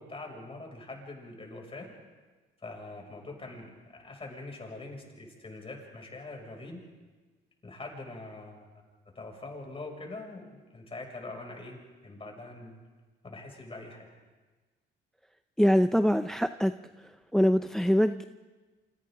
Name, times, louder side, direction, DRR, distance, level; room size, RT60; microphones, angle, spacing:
voice 1, 0.0-1.9 2.6-6.8 7.6-8.7 9.1-12.7 13.2-14.1, left 2 dB, 30° left, 1 dB, 6.7 m, -43 dB
voice 2, 15.6-16.7 17.3-18.2, equal, ahead, 10 dB, 0.6 m, -23 dB
29.0 x 26.5 x 3.9 m, 1.3 s
cardioid pair, 90°, 20 cm